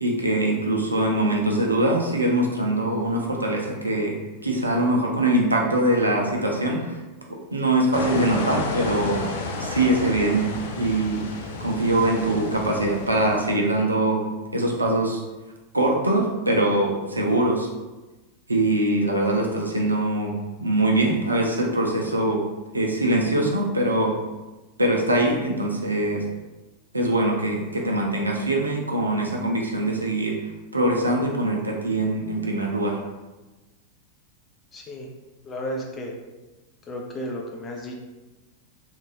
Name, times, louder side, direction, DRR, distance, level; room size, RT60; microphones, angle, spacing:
voice 1, 0.0-7.0 7.3-9.2 9.5-11.2 11.6-14.3 14.5-15.2 15.7-17.7 18.5-22.4 22.7-24.1 24.8-26.2 26.9-30.3 30.7-33.0, right 1 dB, 80° right, 0 dB, 0.5 m, -23 dB
sound 1, 7.9-13.5, left 3 dB, 60° left, 0.5 m, -32 dB
voice 2, 34.7-35.1 35.4-36.1 36.9-37.9, equal, 20° left, -1 dB, 0.6 m, -33 dB
3.5 x 2.5 x 3.1 m, 1.1 s
figure-of-eight pair, 90°, 0 cm